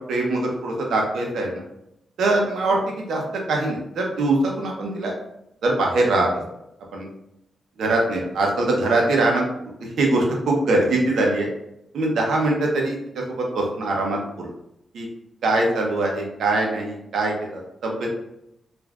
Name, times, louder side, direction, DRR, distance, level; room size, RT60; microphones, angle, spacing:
voice 1, 0.1-1.6 2.2-3.2 3.5-5.1 5.6-6.3 6.9-7.1 7.8-9.4 9.8-11.5 11.9-14.5 14.9-15.1 15.4-18.1, right 2 dB, 90° right, 0 dB, 0.7 m, -22 dB
3.4 x 2.4 x 2.3 m, 0.81 s
cardioid pair, 90°, 0 cm